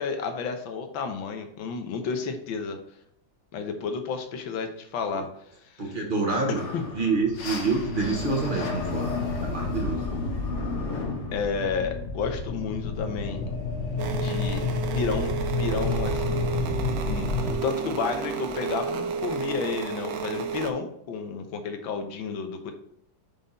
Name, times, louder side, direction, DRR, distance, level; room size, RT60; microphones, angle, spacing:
voice 1, 0.0-2.8 3.5-5.3 5.6-6.0 6.5-6.8 11.3-13.5 14.1-14.7 14.9-16.5 17.1-22.7, left 5 dB, 85° left, 5 dB, 1.7 m, -31 dB
voice 2, 5.8-6.6 6.9-10.0, right 3 dB, 30° right, -1 dB, 1.2 m, -27 dB
sound 1, 6.6-17.5, left 3 dB, 45° left, 1.2 m, -30 dB
Radio Idle, 14.0-20.7, right 6 dB, 65° right, 1.0 m, -32 dB
5.6 x 5.3 x 4.0 m, 0.73 s
omnidirectional pair, 2.1 m